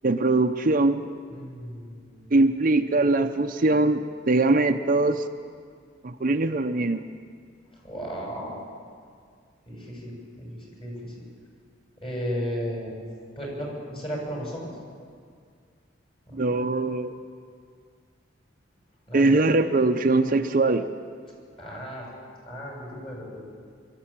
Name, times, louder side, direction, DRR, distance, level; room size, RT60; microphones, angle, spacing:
voice 1, 0.0-1.0 2.3-5.2 6.0-7.0 16.3-17.1 19.1-20.9, right 2 dB, 50° right, 7 dB, 0.7 m, -22 dB
voice 2, 1.3-2.3 7.7-8.6 9.7-11.1 12.0-12.9 13.4-14.7 16.3-16.8 19.1-19.5 21.6-22.1 22.5-23.4, equal, 30° left, -2 dB, 7.1 m, -35 dB
23.5 x 13.0 x 8.9 m, 2.1 s
head